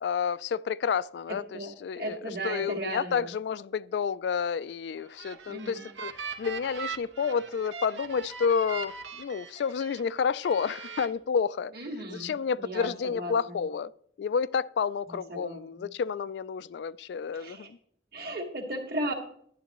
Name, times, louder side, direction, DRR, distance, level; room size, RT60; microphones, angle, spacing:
voice 1, 0.0-11.7 12.1-13.9 14.2-17.8, left 6 dB, 70° left, 0.3 m, -30 dB
voice 2, 1.3-3.3 5.5-5.9 11.7-13.6 15.1-15.9 17.3-17.7 18.1-19.1, right 1 dB, 55° right, 2.0 m, -36 dB
sound 1, 5.0-10.0 10.4-11.1, right 6 dB, 85° right, 1.2 m, -40 dB
11.0 x 11.0 x 3.0 m
head